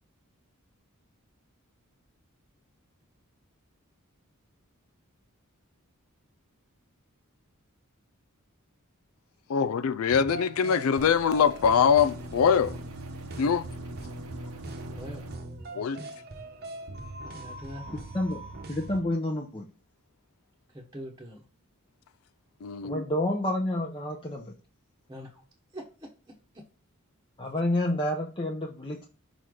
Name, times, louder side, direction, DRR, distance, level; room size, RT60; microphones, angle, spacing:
voice 1, 9.5-12.8 13.4-13.6 15.7-16.0 22.6-23.0 27.9-28.0, left 7 dB, 75° left, 0.4 m, -23 dB
sound 1, 10.1-19.0, right 2 dB, 45° right, 1.0 m, -41 dB
sound 2, 11.0-15.4, right 1 dB, 80° right, 1.1 m, -46 dB
voice 2, 15.0-15.3 17.2-18.0 20.7-21.5 25.1-25.4 25.7-26.6, equal, 15° right, 1.1 m, -44 dB
voice 3, 18.7-19.7 22.8-24.5 27.4-29.0, left 1 dB, 25° left, 0.8 m, -29 dB
5.8 x 3.9 x 4.8 m
head